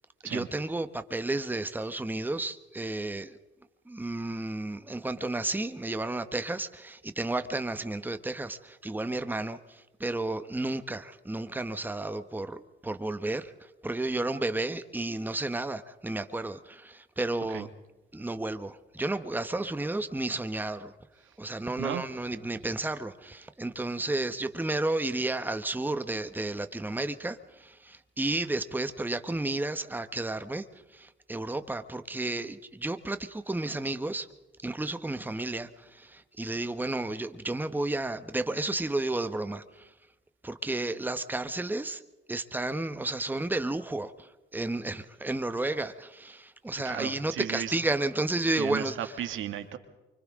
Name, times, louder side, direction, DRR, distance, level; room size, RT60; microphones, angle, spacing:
voice 1, 0.3-3.4 3.9-9.6 10.0-13.5 13.8-17.7 18.1-20.9 21.4-30.6 30.9-34.3 34.6-39.9 40.4-42.0 42.3-44.1 44.5-49.1, right 2 dB, 10° right, 1.2 m, -32 dB
voice 2, 46.8-47.8 48.6-49.8, right 10 dB, 80° right, 2.1 m, -35 dB
29.5 x 25.0 x 3.7 m
cardioid pair, 90°, 20 cm